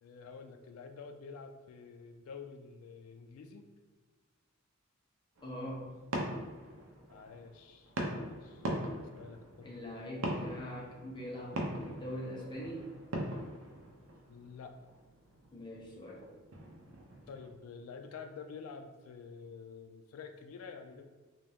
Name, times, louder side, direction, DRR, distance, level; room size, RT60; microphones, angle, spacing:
voice 1, 0.0-3.7 7.1-8.7 9.1-9.7 14.3-14.8 17.3-21.0, left 5 dB, 85° left, 6 dB, 0.3 m, -49 dB
voice 2, 5.4-5.9 9.6-12.9 15.5-16.3, equal, 20° left, -4 dB, 0.7 m, -43 dB
sound 1, 5.4-17.5, right 1 dB, 80° right, 0.7 m, -42 dB
3.8 x 2.7 x 3.4 m, 1.3 s
head